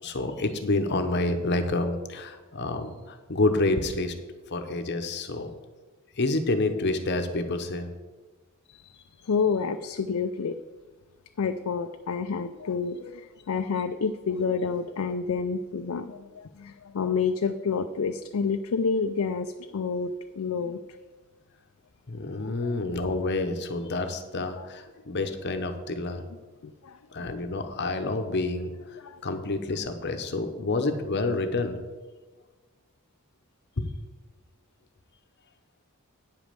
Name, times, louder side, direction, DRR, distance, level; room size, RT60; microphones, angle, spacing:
voice 1, 0.0-4.1 4.5-5.5 6.2-7.9 22.1-26.2 27.1-28.7 29.2-31.8 33.8-33.9, left 2 dB, 50° left, 7 dB, 0.8 m, -28 dB
voice 2, 9.3-10.6 11.4-20.8 22.4-22.8 24.4-24.7 26.6-27.3 29.0-29.2, left 5 dB, 70° left, 7 dB, 0.4 m, -29 dB
9.1 x 5.2 x 7.6 m, 1.3 s
head